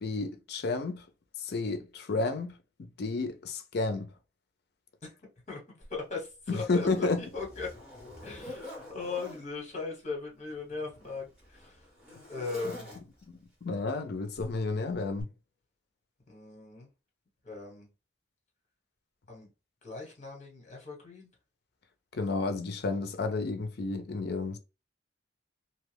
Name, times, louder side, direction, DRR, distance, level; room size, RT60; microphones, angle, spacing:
voice 1, 0.0-1.0 1.4-2.5 3.0-4.1 6.5-7.2 13.3-15.3 22.1-24.6, left 3 dB, 55° left, 0.5 m, -31 dB
voice 2, 5.5-7.7 8.2-11.9 12.3-12.9 16.3-16.9 17.4-17.9 19.3-19.5 19.8-21.3, left 4 dB, 40° left, 1.2 m, -39 dB
Zipper (clothing), 5.8-5.9 6.5-9.5 10.4-13.4 14.4-14.6 15.2-15.3, left 1 dB, 5° right, 1.3 m, -47 dB
2.8 x 2.3 x 3.3 m
head